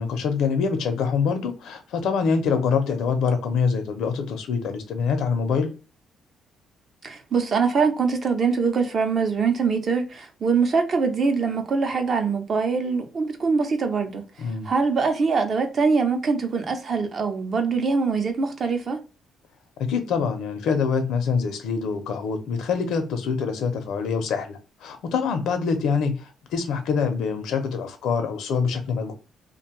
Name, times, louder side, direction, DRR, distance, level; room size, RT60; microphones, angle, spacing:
voice 1, 0.0-5.7 14.4-14.7 19.8-29.1, left 5 dB, 80° left, 0.7 m, -25 dB
voice 2, 7.0-14.2 14.6-19.0, right 5 dB, 45° right, 0.7 m, -23 dB
2.6 x 2.3 x 2.9 m
cardioid pair, 125°, 0 cm